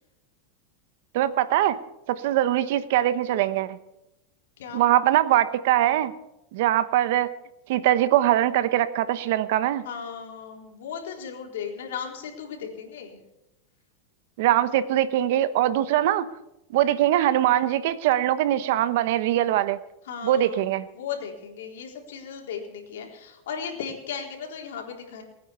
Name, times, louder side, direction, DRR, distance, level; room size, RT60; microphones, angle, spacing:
voice 1, 1.1-1.8 2.1-3.8 4.7-6.1 6.5-7.3 7.7-9.8 14.4-16.3 16.7-19.8 20.2-20.9, right 13 dB, 65° right, 14 dB, 1.0 m, -22 dB
voice 2, 9.8-13.2 20.0-25.2, left 7 dB, 85° left, 1 dB, 3.8 m, -36 dB
20.5 x 9.3 x 6.9 m, 0.90 s
supercardioid pair, 140°, 0 cm